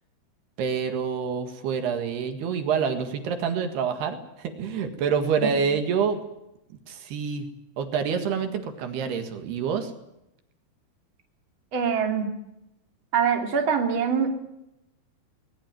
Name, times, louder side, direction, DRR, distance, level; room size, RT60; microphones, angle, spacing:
voice 1, 0.6-6.2 6.9-7.5 7.8-9.9, right 6 dB, 75° right, 7 dB, 3.8 m, -27 dB
voice 2, 11.7-12.3 13.1-14.3, right 7 dB, 35° right, 3 dB, 3.2 m, -24 dB
20.0 x 20.0 x 9.2 m, 0.85 s
omnidirectional pair, 4.8 m